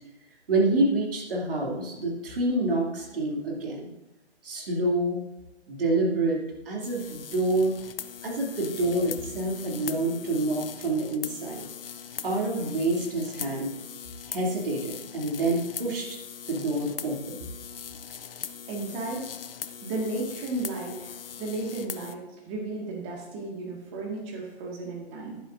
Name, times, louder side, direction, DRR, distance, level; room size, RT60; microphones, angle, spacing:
voice 1, 0.5-3.9 4.4-5.2 5.7-7.7 8.2-11.7 12.2-13.7 14.3-16.2 16.5-17.4, right 2 dB, 55° right, -2 dB, 2.8 m, -27 dB
sound 1, 6.8-22.2, left 8 dB, 55° left, 0.7 m, -41 dB
voice 2, 18.7-19.3 19.8-25.4, right 2 dB, 25° right, -1 dB, 1.9 m, -34 dB
11.0 x 9.8 x 2.6 m, 0.97 s
figure-of-eight pair, 140°, 34 cm